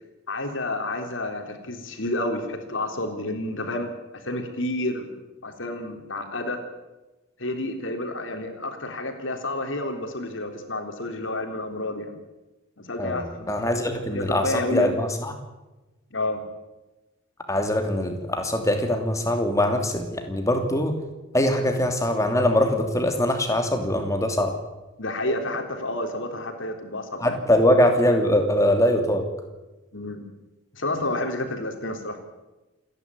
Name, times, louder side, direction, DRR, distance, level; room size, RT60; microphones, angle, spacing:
voice 1, 0.3-5.1 5.4-6.6 7.4-12.1 12.8-13.6 14.1-14.9 16.1-16.4 25.0-27.4 29.9-30.2 30.8-32.2, left 1 dB, 70° left, 5 dB, 3.6 m, -30 dB
voice 2, 13.0-15.4 17.5-20.9 21.3-24.5 27.2-29.2, left 1 dB, 15° left, 5 dB, 2.9 m, -22 dB
28.0 x 11.0 x 9.7 m, 1.1 s
head